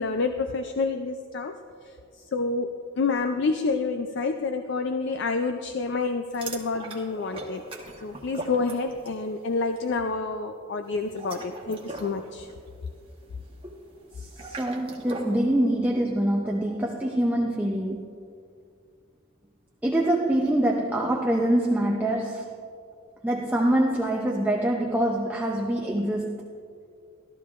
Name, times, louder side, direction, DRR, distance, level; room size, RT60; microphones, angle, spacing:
voice 1, 0.0-1.5 1.8-7.6 8.0-12.5, left 4 dB, 55° left, 0.4 m, -28 dB
sound 1, 6.3-9.2 9.5-9.8 11.0-15.4, right 2 dB, 25° right, 1.0 m, -40 dB
voice 2, 14.1-18.1 19.8-22.5 23.2-26.6, right 1 dB, 5° right, 0.4 m, -25 dB
14.0 x 12.5 x 2.5 m
head